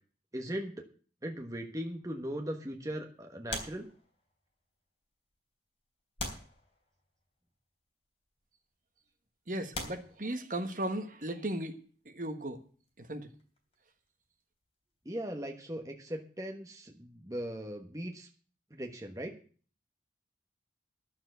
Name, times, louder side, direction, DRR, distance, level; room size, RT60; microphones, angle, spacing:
voice 1, 0.3-0.8 1.2-3.9 15.0-18.3 18.7-19.3, equal, 20° right, 3 dB, 1.3 m, -39 dB
sound 1, 3.5-4.5 5.3-5.4 6.2-7.2 8.2-8.4 9.1-9.2 9.7-10.9 12.8-14.6 14.9-15.1, left 2 dB, 35° left, 3.4 m, -43 dB
voice 2, 9.5-11.8 12.0-12.6 13.0-13.3, right 1 dB, 45° right, 7 dB, 1.4 m, -36 dB
11.5 x 7.3 x 8.0 m, 0.41 s
head